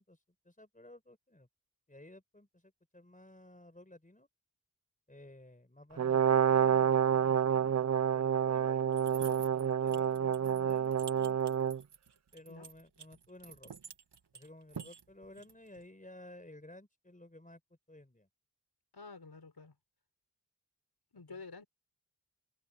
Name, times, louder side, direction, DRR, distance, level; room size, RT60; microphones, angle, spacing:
voice 1, 0.0-1.5 1.9-4.3 5.1-7.8 8.1-11.6 12.3-13.7 14.3-17.6 17.9-18.3 21.3-21.4, left 1 dB, 20° left, 4.8 m, -55 dB
Brass instrument, 6.0-11.8, right 8 dB, 45° right, 0.5 m, -28 dB
sound 1, 8.9-15.8, right 6 dB, 90° right, 1.7 m, -50 dB
voice 2, 18.9-19.7 21.1-21.7, left 4 dB, 70° left, 6.3 m, -49 dB
cardioid pair, 45°, 40 cm